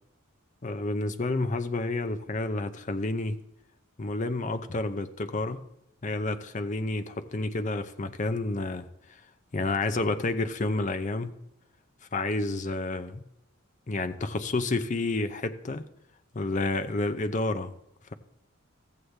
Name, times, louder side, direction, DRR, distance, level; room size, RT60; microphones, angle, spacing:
voice 1, 0.6-3.4 4.0-5.6 6.0-9.2 9.5-11.3 12.1-13.2 13.9-15.8 16.3-17.7, left 2 dB, 35° left, 9 dB, 0.6 m, -30 dB
14.0 x 8.0 x 3.4 m, 0.85 s
head